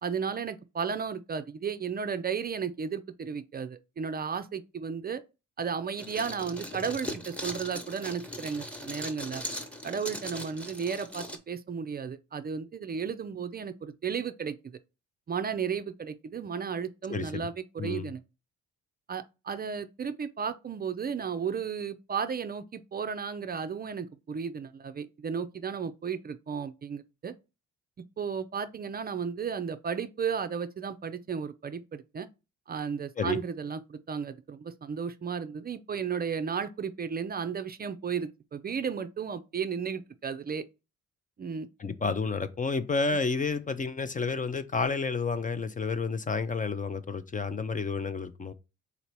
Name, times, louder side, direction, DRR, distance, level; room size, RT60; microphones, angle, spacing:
voice 1, 0.0-5.2 5.6-9.4 9.8-14.8 15.3-18.2 19.1-27.3 28.2-32.3 32.7-40.7 41.4-41.7, right 6 dB, 30° right, 0.4 m, -34 dB
sound 1, 6.0-11.4, equal, 5° left, 0.9 m, -39 dB
voice 2, 17.1-17.5 17.8-18.1 33.2-33.4 41.8-48.5, left 4 dB, 25° left, 0.4 m, -30 dB
4.0 x 2.8 x 4.5 m
cardioid pair, 90°, 30 cm